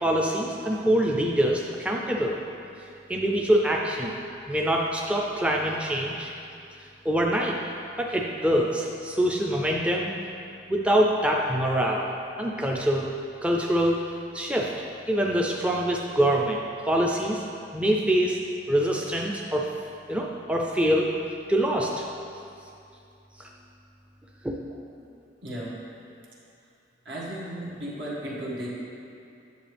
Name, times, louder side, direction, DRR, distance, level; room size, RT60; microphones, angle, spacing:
voice 1, 0.0-2.4 3.1-4.2 4.5-6.3 7.0-7.6 8.0-10.1 10.7-12.1 12.4-13.1 13.4-14.0 14.3-14.7 15.1-16.6 16.8-17.4 17.7-18.4 18.7-19.7 20.1-21.1 21.5-22.1 23.4-23.5 24.4-24.5, right 1 dB, 5° right, -1 dB, 0.4 m, -24 dB
voice 2, 25.4-25.8 27.1-28.7, right 1 dB, 75° right, -6 dB, 1.9 m, -35 dB
10.0 x 6.9 x 3.4 m, 2.6 s
head